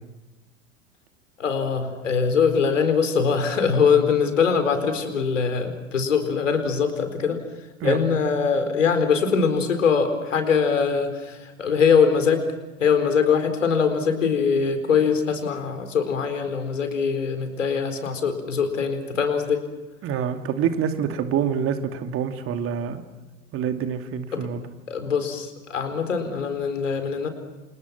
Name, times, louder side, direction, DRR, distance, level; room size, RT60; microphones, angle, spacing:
voice 1, 1.4-7.4 7.8-12.4 12.8-19.6 24.3-24.5 24.9-27.3, left 6 dB, 70° left, 8 dB, 4.4 m, -22 dB
voice 2, 20.0-23.0 23.5-24.6, right 8 dB, 35° right, 7 dB, 2.7 m, -26 dB
29.5 x 29.0 x 6.1 m, 1.2 s
figure-of-eight pair, 80°, 39 cm